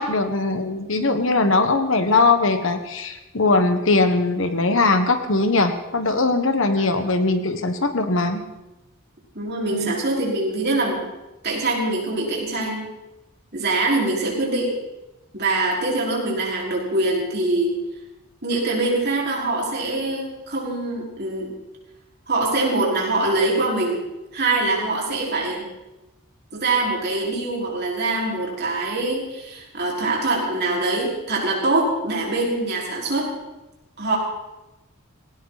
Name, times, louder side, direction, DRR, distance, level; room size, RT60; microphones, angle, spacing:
voice 1, 0.0-8.4 9.7-9.9, left 3 dB, 60° left, 7 dB, 1.5 m, -20 dB
voice 2, 9.3-11.0 11.4-12.8 13.5-14.7 15.3-17.7 18.4-21.5 22.3-24.0 24.3-25.7 26.5-33.3 34.0-34.2, right 2 dB, 50° right, -3 dB, 5.1 m, -23 dB
18.5 x 18.0 x 4.2 m, 1.0 s
head